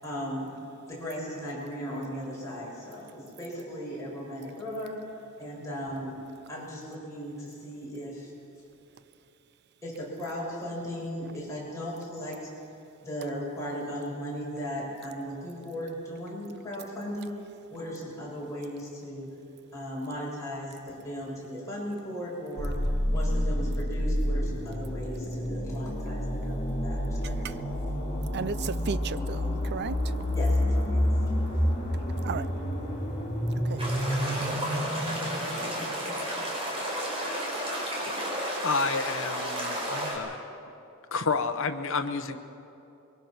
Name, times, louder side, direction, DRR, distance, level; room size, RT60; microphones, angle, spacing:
voice 1, 0.0-0.6 0.9-5.0 5.4-6.2 6.5-8.3 9.8-12.5 13.0-17.4 17.7-19.3 19.7-22.8 23.1-27.7 30.3-31.1, equal, 15° left, -6 dB, 7.0 m, -37 dB
sound 1, 22.6-36.3, equal, 35° left, 3.6 m, -29 dB
voice 2, 28.3-30.1 32.2-32.5 33.7-33.8, right 5 dB, 50° right, 16 dB, 0.5 m, -34 dB
sound 2, 33.8-40.1, equal, 25° right, 4.9 m, -32 dB
voice 3, 38.6-40.4 41.1-42.4, left 4 dB, 65° left, 9 dB, 1.1 m, -30 dB
23.5 x 23.0 x 6.1 m, 2.8 s
head